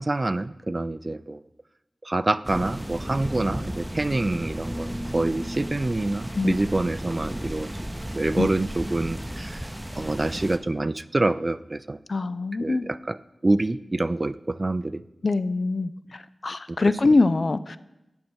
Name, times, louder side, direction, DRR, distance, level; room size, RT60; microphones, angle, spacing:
voice 1, 0.0-1.4 2.0-7.7 8.1-9.7 10.0-12.0 12.6-13.2 13.4-15.0 16.7-16.8, right 2 dB, 40° right, 16 dB, 0.3 m, -26 dB
sound 1, 2.4-10.6, equal, 10° right, 0.7 m, -34 dB
voice 2, 12.1-12.9 15.2-17.8, left 3 dB, 60° left, 14 dB, 0.3 m, -23 dB
7.7 x 5.5 x 6.2 m, 0.94 s
cardioid pair, 45°, 0 cm